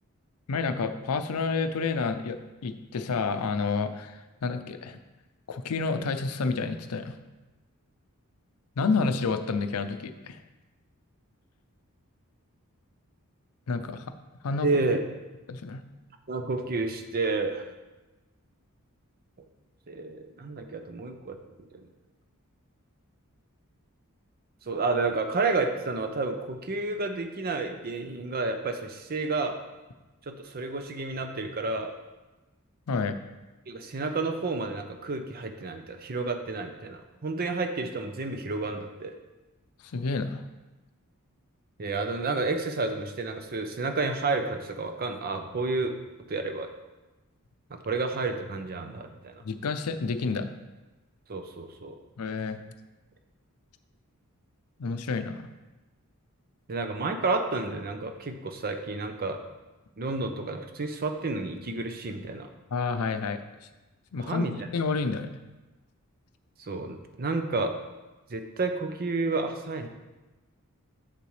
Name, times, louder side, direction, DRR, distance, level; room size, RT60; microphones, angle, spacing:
voice 1, 0.5-5.0 5.5-7.2 8.8-10.4 13.7-14.1 14.4-14.7 15.5-15.8 32.9-33.2 39.8-40.4 49.4-50.5 52.2-52.6 54.8-55.5 62.7-63.4 64.1-65.3, left 4 dB, 85° left, 9 dB, 0.5 m, -29 dB
voice 2, 14.6-15.0 16.3-17.7 19.9-21.4 21.7-21.8 24.7-29.6 30.3-31.9 33.7-39.1 41.8-45.9 46.3-46.7 47.7-49.4 51.3-52.0 56.7-59.4 60.0-62.5 64.2-64.5 66.6-67.8 68.3-69.9, right 3 dB, 45° right, 6 dB, 0.6 m, -30 dB
7.4 x 6.8 x 3.2 m, 1.1 s
head